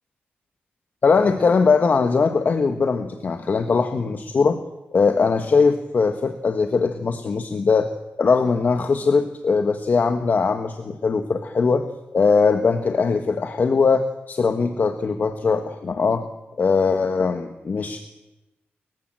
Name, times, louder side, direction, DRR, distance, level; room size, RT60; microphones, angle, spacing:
voice 1, 1.0-4.6 4.9-7.9 8.2-11.9 12.1-16.3 16.6-18.0, left 4 dB, 45° left, 7 dB, 1.4 m, -20 dB
28.0 x 15.5 x 7.6 m, 0.98 s
cardioid pair, 100°, 4 cm